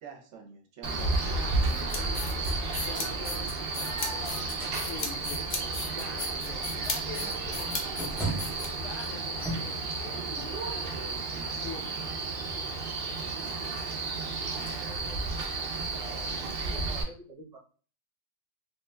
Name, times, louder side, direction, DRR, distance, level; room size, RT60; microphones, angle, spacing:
voice 1, 0.0-1.5 10.9-11.6, right 6 dB, 60° right, 2 dB, 0.9 m, -47 dB
Male speech man speaking, 0.8-17.0, right 3 dB, 80° right, 0.5 m, -32 dB
voice 2, 1.3-2.6 2.9-4.3 4.9-5.5 5.8-8.4 8.6-10.9 11.6-12.4, left 4 dB, 65° left, -2 dB, 0.8 m, -45 dB
sound 1, 1.7-9.1, left 3 dB, 80° left, 0.4 m, -37 dB
sound 2, 4.2-4.8 5.4-5.6 6.3-6.5 6.9-8.7 9.3-9.8, right 2 dB, 5° left, 0.3 m, -37 dB
voice 3, 14.5-15.2 15.9-17.6, right 2 dB, 30° right, -1 dB, 0.8 m, -48 dB
2.5 x 2.2 x 3.3 m, 0.40 s
omnidirectional pair, 1.6 m